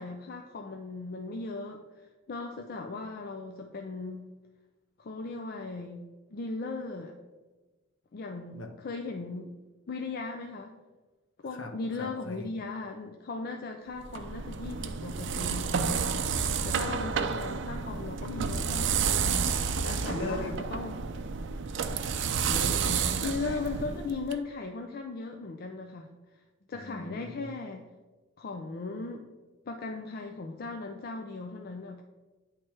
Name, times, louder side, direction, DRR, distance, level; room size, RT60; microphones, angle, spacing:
voice 1, 0.0-4.3 5.0-7.1 8.1-9.5 9.9-10.7 11.4-21.0 23.2-26.4 26.7-27.9 28.4-29.3 29.7-32.0, left 3 dB, 50° left, 3 dB, 0.4 m, -38 dB
voice 2, 12.0-12.5 16.8-17.6 19.9-20.6 22.2-23.8 26.7-27.5, left 2 dB, 65° left, 3 dB, 0.9 m, -40 dB
sound 1, 14.0-24.3, right 6 dB, 60° right, 0.4 m, -30 dB
8.8 x 3.3 x 4.4 m, 1.2 s
head